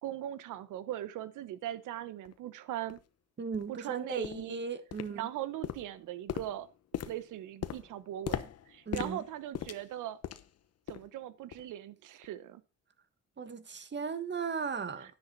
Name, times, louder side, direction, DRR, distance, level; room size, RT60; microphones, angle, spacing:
voice 1, 0.0-3.0 3.7-4.6 5.1-6.7 7.0-10.2 10.9-12.6 15.0-15.2, right 12 dB, 85° right, 1.1 m, -40 dB
sound 1, 2.2-2.3 2.9-3.0 3.5-3.7 4.2-4.5 4.9-5.4 5.6-10.6 10.9-11.2 11.5-11.7 12.2-12.3, left 10 dB, 55° left, 1.0 m, -40 dB
voice 2, 3.4-5.3 8.8-9.2 13.4-15.1, right 5 dB, 35° right, 1.7 m, -36 dB
10.5 x 10.0 x 4.1 m
cardioid pair, 90°, 30 cm